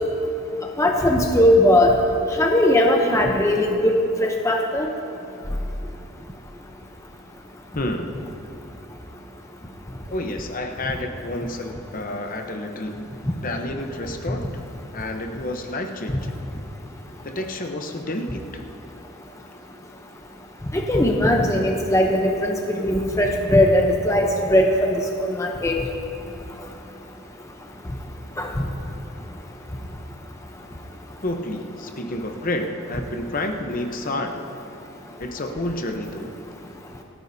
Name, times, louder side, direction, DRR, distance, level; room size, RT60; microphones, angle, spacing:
voice 1, 0.8-1.9 2.4-4.9 20.7-25.8 28.4-28.6, left 1 dB, 15° left, 1 dB, 0.7 m, -19 dB
voice 2, 7.7-8.2 10.1-13.1 13.4-14.6 14.9-16.4 17.2-18.6 31.2-34.5 35.2-36.3, left 1 dB, 40° left, 4 dB, 0.9 m, -30 dB
28.5 x 9.5 x 2.7 m, 2.8 s
head